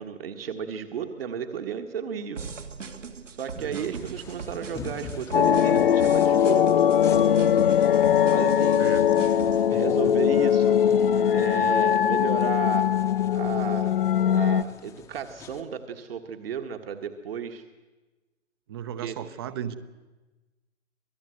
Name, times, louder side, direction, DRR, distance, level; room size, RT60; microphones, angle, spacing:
voice 1, 0.0-2.4 3.3-6.9 8.3-8.8 9.7-10.8 11.3-12.9 13.3-13.9 14.3-17.6 19.0-19.2, right 7 dB, 50° right, 5 dB, 1.8 m, -33 dB
sound 1, 2.3-9.6, right 5 dB, 75° right, 2.7 m, -39 dB
voice 2, 3.6-4.1 8.8-9.1 18.7-19.8, right 9 dB, 20° right, 14 dB, 0.8 m, -36 dB
sound 2, 3.7-15.6, left 5 dB, 5° left, 1.0 m, -45 dB
sound 3, 5.3-14.6, left 9 dB, 45° left, 0.8 m, -21 dB
26.5 x 19.0 x 7.9 m, 1.2 s
figure-of-eight pair, 145°, 38 cm